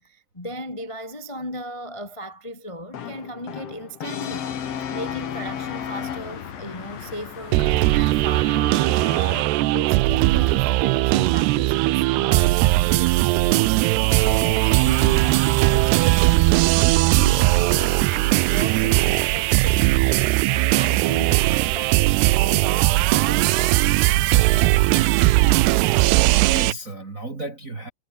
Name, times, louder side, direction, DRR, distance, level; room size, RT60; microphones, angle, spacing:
voice 1, 0.0-9.2 9.5-24.8, equal, 15° left, 1.2 m, -37 dB
Brass instrument, 2.9-6.7, left 8 dB, 50° left, 2.1 m, -33 dB
sound 1, 4.3-9.4, left 7 dB, 85° left, 6.0 m, -39 dB
sound 2, 7.5-26.7, right 19 dB, 85° right, 2.7 m, -19 dB
voice 2, 26.0-27.9, right 2 dB, 30° right, 1.8 m, -34 dB
omnidirectional pair, 4.9 m